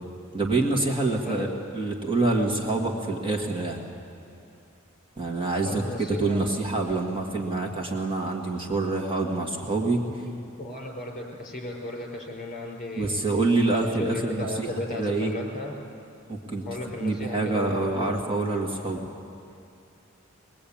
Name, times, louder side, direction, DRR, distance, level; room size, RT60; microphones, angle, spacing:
voice 1, 0.3-1.5 1.7-3.8 5.2-10.0 13.0-14.7 15.0-15.3 16.3-16.7 17.0-19.1, right 2 dB, 25° right, 0 dB, 1.9 m, -26 dB
voice 2, 1.2-1.6 5.6-6.5 10.1-10.3 10.6-13.2 13.7-15.7 16.6-18.1, left 2 dB, 40° left, 1 dB, 4.4 m, -35 dB
21.5 x 21.0 x 8.7 m, 2.5 s
head